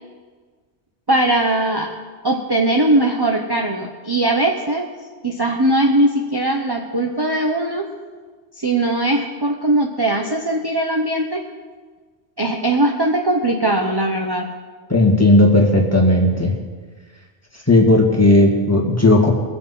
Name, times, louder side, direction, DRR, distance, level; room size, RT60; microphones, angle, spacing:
voice 1, 1.1-1.9 2.2-4.9 5.2-7.8 8.6-11.4 12.4-14.5, right 1 dB, 20° right, 1 dB, 0.9 m, -19 dB
voice 2, 14.9-16.5 17.7-19.3, left 1 dB, 15° left, -1 dB, 2.0 m, -14 dB
22.0 x 7.5 x 5.6 m, 1.5 s
omnidirectional pair, 1.2 m